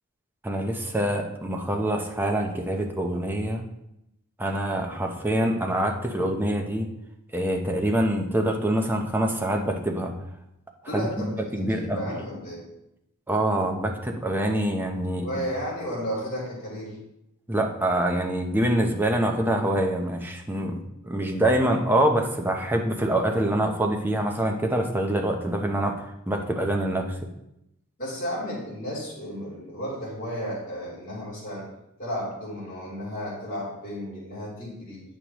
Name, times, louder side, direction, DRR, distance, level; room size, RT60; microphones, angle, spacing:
voice 1, 0.4-3.6 4.4-6.9 7.3-10.1 10.9-11.3 11.5-12.0 13.3-15.4 17.5-20.8 21.1-27.1, right 1 dB, 10° right, 2 dB, 0.7 m, -25 dB
voice 2, 10.8-12.6 15.2-17.0 28.0-31.6 32.0-35.0, equal, 40° left, -7 dB, 3.1 m, -33 dB
8.6 x 6.4 x 3.0 m, 0.83 s
head